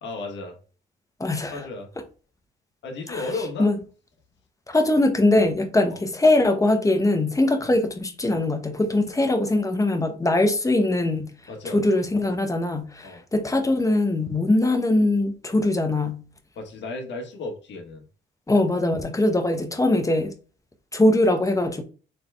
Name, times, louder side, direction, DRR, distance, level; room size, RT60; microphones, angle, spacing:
voice 1, 0.0-0.5 1.5-1.9 2.8-3.7 5.9-6.0 7.6-7.7 11.5-12.1 13.0-13.2 16.6-18.1, left 3 dB, 65° left, 1.5 m, -34 dB
voice 2, 1.2-1.7 3.1-3.3 3.6-3.7 4.7-11.4 11.6-16.2 18.5-20.3 20.9-21.8, left 2 dB, 15° left, 0.9 m, -21 dB
4.2 x 3.4 x 3.4 m
cardioid pair, 90°, 20 cm